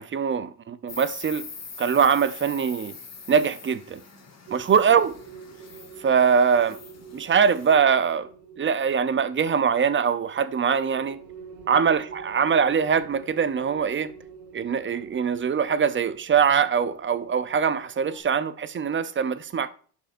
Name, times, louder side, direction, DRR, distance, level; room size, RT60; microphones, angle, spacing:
voice 1, 0.0-1.5 1.8-2.9 3.3-4.0 4.5-5.1 6.0-6.8 7.1-8.3 8.6-11.2 11.7-14.1 14.5-19.7, right 6 dB, 30° right, 0.6 m, -22 dB
Insect, 0.9-7.7, left 5 dB, 40° left, 1.9 m, -43 dB
sound 1, 4.5-18.2, right 5 dB, 55° right, 2.2 m, -46 dB
11.0 x 5.4 x 2.6 m
cardioid pair, 100°, 42 cm